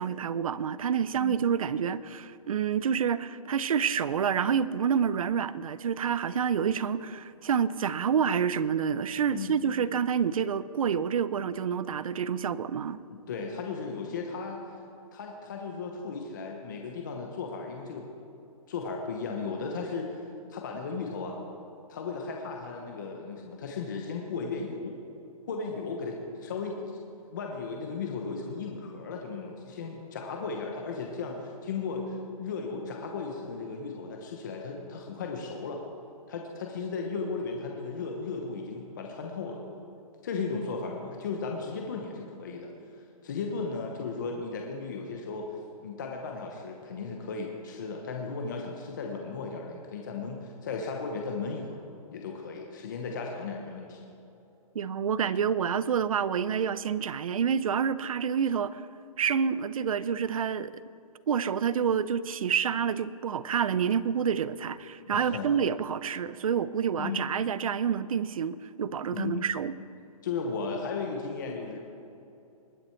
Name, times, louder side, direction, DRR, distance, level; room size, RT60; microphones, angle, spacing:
voice 1, 0.0-13.0 54.7-58.8 59.2-60.7 61.3-69.7, right 7 dB, 65° right, 17 dB, 0.5 m, -28 dB
voice 2, 13.1-14.8 15.1-18.1 18.7-20.2 20.5-21.4 21.9-25.0 25.5-26.8 27.2-35.8 36.3-39.6 40.2-45.5 45.8-51.8 52.1-54.0 65.1-65.5 67.0-67.3 69.1-69.5 70.2-71.8, left 4 dB, 30° left, 1 dB, 0.9 m, -35 dB
20.0 x 7.7 x 4.5 m, 2.8 s
hypercardioid pair, 180°, 19 cm